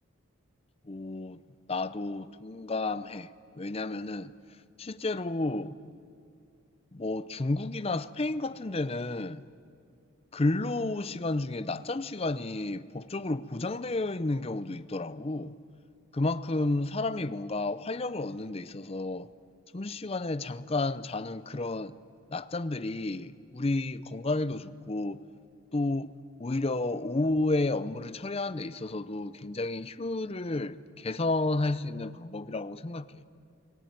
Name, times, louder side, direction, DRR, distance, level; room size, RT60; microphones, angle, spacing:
voice 1, 0.9-1.4 1.7-4.3 4.8-5.8 6.9-9.4 10.3-15.5 16.1-19.3 19.7-21.9 22.3-25.2 25.7-26.1 26.4-33.2, left 2 dB, 30° left, 0.5 m, -31 dB
28.0 x 18.5 x 9.2 m
head